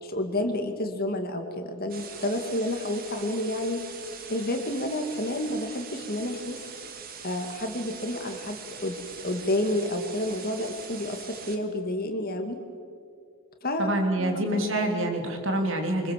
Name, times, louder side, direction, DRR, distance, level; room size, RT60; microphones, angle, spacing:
voice 1, 0.0-3.8 4.3-6.6 7.2-8.6 8.8-12.6 13.6-14.7, left 1 dB, 45° left, 6 dB, 2.1 m, -30 dB
sound 1, 1.9-11.6, right 6 dB, 40° right, 2.0 m, -43 dB
voice 2, 13.8-16.1, right 1 dB, 60° right, 3 dB, 3.2 m, -26 dB
25.0 x 21.5 x 7.6 m, 2.3 s
head